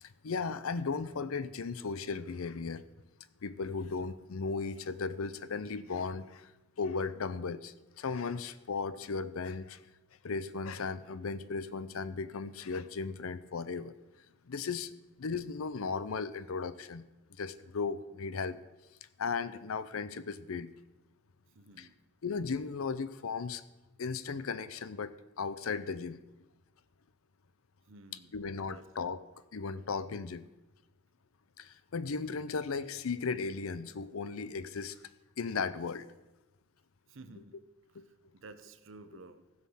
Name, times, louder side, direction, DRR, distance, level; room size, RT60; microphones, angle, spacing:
voice 1, 0.0-2.9 3.4-6.5 6.8-9.8 10.2-13.9 14.5-14.9 15.2-17.0 17.4-18.6 19.2-20.7 21.8-21.9 22.2-23.6 24.0-26.2 28.3-29.2 29.5-30.5 31.6-35.0 35.4-36.1 37.9-38.0, left 4 dB, 90° left, 15 dB, 0.6 m, -36 dB
voice 2, 21.5-22.0 27.9-29.2 37.1-37.6 37.9-39.5, right 3 dB, 70° right, 10 dB, 0.8 m, -54 dB
15.5 x 6.4 x 5.6 m, 1.0 s
head